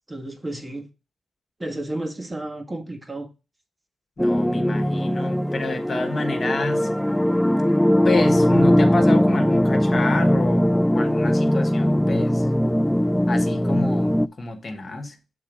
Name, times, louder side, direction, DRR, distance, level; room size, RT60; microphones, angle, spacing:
voice 1, 0.1-0.9 1.6-3.3, right 1 dB, 25° right, 1.6 m, -32 dB
voice 2, 4.2-6.9 8.0-12.5 13.3-15.1, left 3 dB, 50° left, 1.3 m, -29 dB
sound 1, 4.2-14.3, equal, 5° left, 0.3 m, -20 dB
6.5 x 4.0 x 5.0 m
cardioid pair, 55°, 0 cm